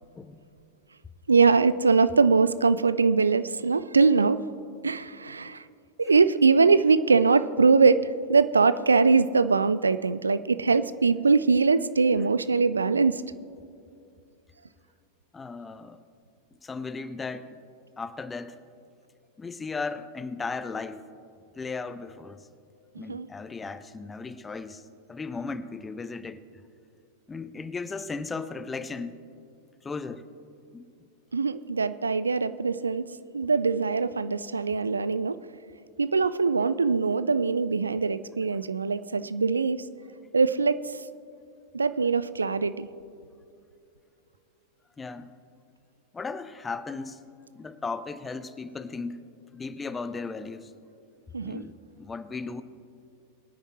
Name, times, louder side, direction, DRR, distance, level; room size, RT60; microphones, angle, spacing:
voice 1, 1.3-4.4 4.8-5.6 6.0-13.2 23.1-23.3 31.3-33.1 33.3-35.4 36.0-39.8 40.3-40.8 41.7-42.9 51.3-51.6, right 4 dB, 75° right, 14 dB, 0.4 m, -22 dB
voice 2, 15.3-16.0 16.6-17.6 18.0-18.6 19.4-21.0 21.6-22.5 23.0-24.8 25.1-26.4 27.3-29.2 29.8-30.3 30.7-30.8 45.0-45.3 46.1-47.3 47.5-49.2 49.5-50.7 51.4-51.7 52.0-52.6, left 4 dB, 15° left, 14 dB, 0.6 m, -36 dB
22.5 x 9.8 x 3.1 m, 2.6 s
figure-of-eight pair, 90°, 0 cm